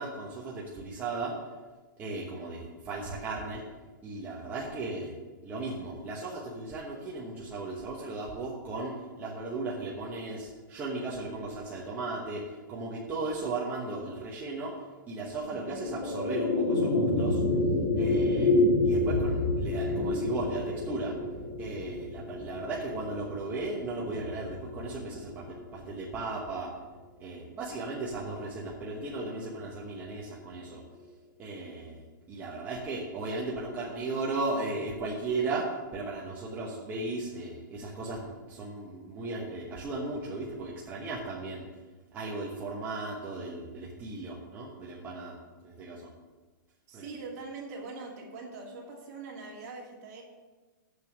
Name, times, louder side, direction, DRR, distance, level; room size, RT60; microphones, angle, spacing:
voice 1, 0.0-1.3 2.0-3.6 4.0-5.1 5.4-12.4 12.7-14.8 15.1-17.4 17.9-18.6 18.8-21.2 21.6-26.7 27.2-30.8 31.4-41.6 42.1-45.3 45.6-46.1 46.9-47.1, right 3 dB, 15° right, -4 dB, 1.1 m, -36 dB
sound 1, 15.4-25.9, left 2 dB, 50° left, 1.8 m, -29 dB
voice 2, 46.9-50.2, right 3 dB, 45° right, -2 dB, 2.6 m, -42 dB
6.9 x 6.6 x 7.3 m, 1.3 s
hypercardioid pair, 160°, 11 cm